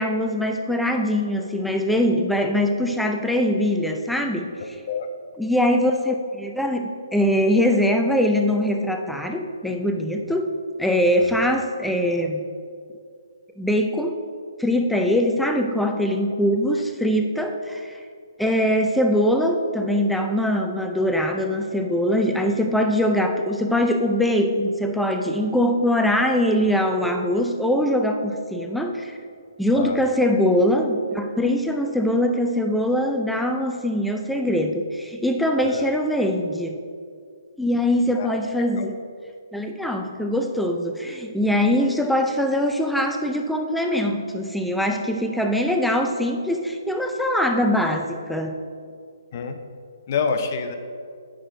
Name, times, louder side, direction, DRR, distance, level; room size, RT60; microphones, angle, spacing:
voice 1, 0.0-4.6 5.4-10.5 10.8-12.5 13.6-14.1 14.6-18.0 18.4-29.2 29.6-36.8 37.6-39.0 39.5-48.6, equal, ahead, 3 dB, 0.4 m, -22 dB
voice 2, 4.6-5.1 11.2-11.4 29.7-30.0 35.6-35.8 38.1-38.4 38.8-38.9 49.3-49.6 50.1-50.8, left 5 dB, 40° left, 6 dB, 0.7 m, -27 dB
8.5 x 6.2 x 3.8 m, 2.3 s
hypercardioid pair, 160°, 2 cm